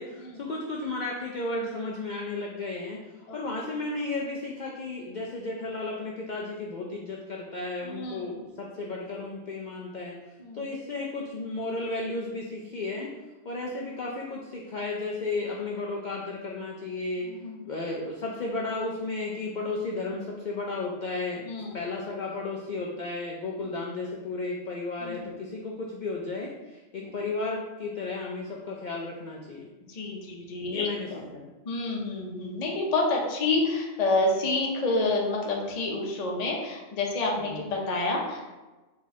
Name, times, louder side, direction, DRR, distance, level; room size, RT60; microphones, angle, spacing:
voice 1, 0.0-3.0 3.3-10.2 10.5-13.1 13.4-17.3 17.6-29.7 30.7-31.5 37.4-37.6, left 3 dB, 80° left, -1 dB, 0.4 m, -34 dB
voice 2, 7.8-8.4 10.4-10.7 17.3-17.6 21.4-21.8 25.0-25.2 27.0-27.1 29.9-31.2 31.7-38.5, left 2 dB, 40° left, -1 dB, 0.6 m, -29 dB
3.8 x 2.4 x 4.0 m, 1.2 s
omnidirectional pair, 1.4 m